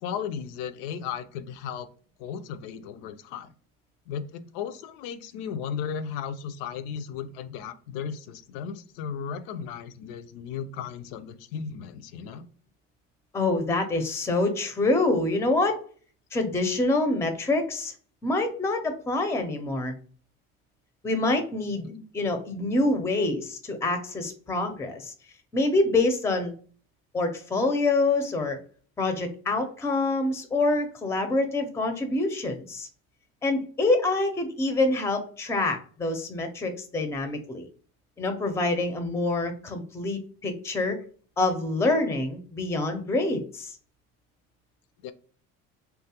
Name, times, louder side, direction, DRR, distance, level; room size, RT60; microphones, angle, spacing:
voice 1, 0.0-1.9 2.2-3.5 4.1-12.4 21.8-22.0 45.0-45.1, left 7 dB, 80° left, 12 dB, 0.5 m, -35 dB
voice 2, 13.3-15.8 16.3-17.9 18.2-19.9 21.0-21.9 22.1-25.1 25.5-26.5 27.1-28.6 29.0-32.9 33.4-37.7 38.2-41.0 41.4-43.8, left 2 dB, 10° left, 7 dB, 0.5 m, -26 dB
3.1 x 2.3 x 2.8 m, 0.43 s
supercardioid pair, 100°, 31 cm